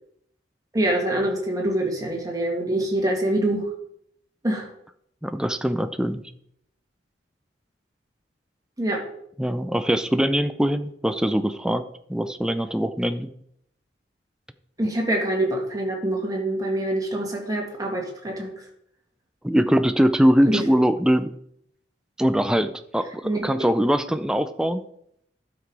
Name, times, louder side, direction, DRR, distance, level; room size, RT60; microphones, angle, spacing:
voice 1, 0.7-3.6 4.4-4.7 8.8-9.0 14.8-18.5 20.5-20.6 23.2-23.4, right 1 dB, 20° right, -1 dB, 2.3 m, -25 dB
voice 2, 5.2-6.2 9.4-11.8 12.1-13.3 19.4-21.3 22.2-24.8, equal, 5° right, 9 dB, 0.4 m, -22 dB
12.0 x 6.0 x 4.8 m, 0.72 s
head